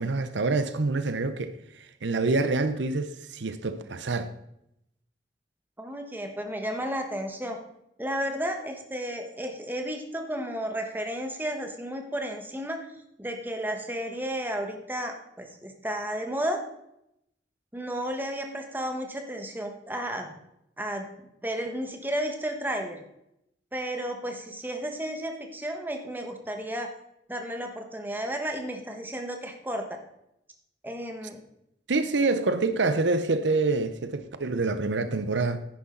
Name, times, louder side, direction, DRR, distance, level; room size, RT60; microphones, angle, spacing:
voice 1, 0.0-4.3 31.9-35.6, right 3 dB, 80° right, 0.7 m, -26 dB
voice 2, 5.8-7.6 8.0-12.9 13.2-16.6 17.7-20.3 20.8-21.1 21.4-23.0 23.7-26.9 27.3-29.9 30.8-31.4, equal, 10° right, 1.2 m, -33 dB
10.0 x 10.0 x 3.9 m
head